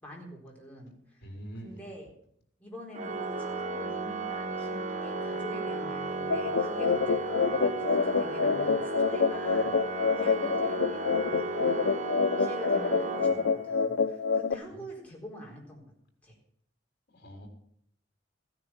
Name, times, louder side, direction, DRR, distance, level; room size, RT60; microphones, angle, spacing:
voice 1, 0.0-1.2 1.6-2.1 2.6-9.7 10.1-15.8 16.2-16.4, equal, 10° left, -2 dB, 4.1 m, -45 dB
voice 2, 1.2-1.8 17.1-17.5, right 1 dB, 55° left, 2 dB, 3.9 m, -43 dB
Organ, 2.9-13.9, right 3 dB, 40° right, 0.9 m, -34 dB
sound 1, 6.3-14.5, left 5 dB, 75° left, 0.6 m, -27 dB
15.0 x 10.0 x 6.0 m, 0.68 s
head